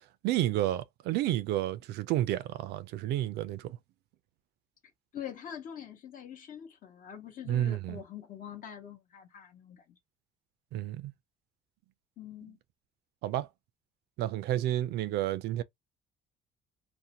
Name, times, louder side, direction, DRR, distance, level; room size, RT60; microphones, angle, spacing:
voice 1, 0.2-3.8 7.5-8.0 10.7-11.1 13.2-13.5 14.2-15.6, right 13 dB, 80° right, 0.4 m, -30 dB
voice 2, 5.1-10.0 12.2-12.6, left 9 dB, 55° left, 0.8 m, -44 dB
2.6 x 2.1 x 2.8 m
cardioid pair, 110°, 17 cm